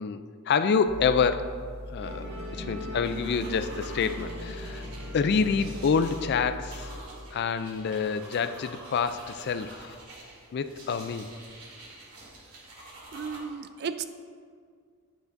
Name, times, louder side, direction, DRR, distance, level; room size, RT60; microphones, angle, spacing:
voice 1, 0.0-1.6 1.9-4.9 5.1-6.9 7.3-10.0 10.5-11.3, left 5 dB, 50° left, 11 dB, 0.3 m, -27 dB
sound 1, 0.9-7.0, left 1 dB, 65° left, 0.8 m, -41 dB
Musical instrument, 2.0-8.6, equal, 65° right, 1.5 m, -42 dB
sound 2, 3.0-13.4, right 2 dB, 80° right, 2.3 m, -47 dB
voice 2, 13.1-14.0, right 6 dB, 50° right, 11 dB, 0.4 m, -34 dB
9.5 x 9.0 x 2.6 m, 2.1 s
head